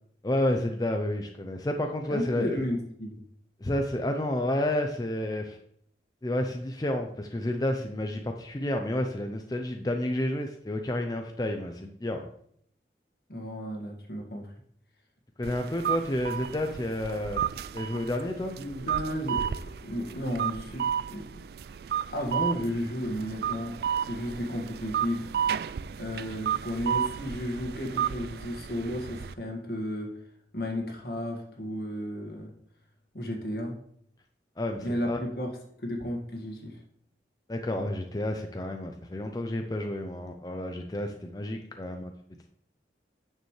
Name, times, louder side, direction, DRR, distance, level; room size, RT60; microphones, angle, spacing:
voice 1, 0.2-2.6 3.6-5.6 6.2-12.2 15.4-17.4 17.7-18.6 34.6-35.2 37.5-42.1, left 1 dB, 20° left, 4 dB, 0.5 m, -30 dB
voice 2, 2.1-3.2 13.3-14.5 18.6-21.2 22.1-25.3 26.0-30.1 30.5-32.5 33.1-33.7 34.8-35.5 35.8-36.8, equal, 65° left, 1 dB, 1.8 m, -33 dB
sound 1, 15.4-29.3, right 8 dB, 60° right, 0.3 m, -33 dB
9.3 x 6.7 x 3.2 m, 0.67 s
head